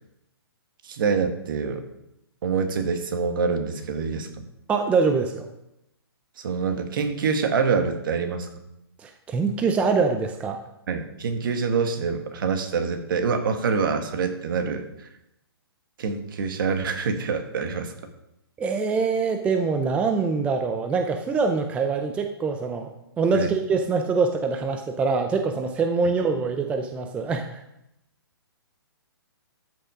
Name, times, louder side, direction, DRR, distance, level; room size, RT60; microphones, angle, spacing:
voice 1, 0.8-1.8 2.4-4.3 6.4-8.5 10.9-14.8 16.0-17.9 23.3-23.5, right 5 dB, 55° right, 8 dB, 1.6 m, -25 dB
voice 2, 4.7-5.5 9.0-10.6 18.6-22.9 23.2-27.6, right 4 dB, 10° right, 6 dB, 0.5 m, -24 dB
13.5 x 6.4 x 5.0 m, 0.85 s
hypercardioid pair, 150°, 13 cm